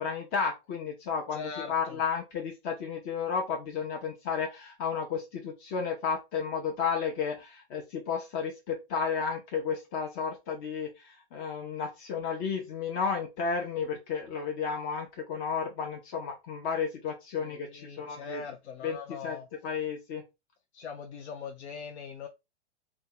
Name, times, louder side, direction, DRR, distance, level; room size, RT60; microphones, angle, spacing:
voice 1, 0.0-18.4 18.8-19.4 19.6-20.2, left 6 dB, 35° left, 0.6 m, -32 dB
voice 2, 1.3-2.0 17.4-19.5 20.7-22.3, left 6 dB, 80° left, 0.5 m, -41 dB
2.6 x 2.2 x 3.7 m
hypercardioid pair, 115°, 33 cm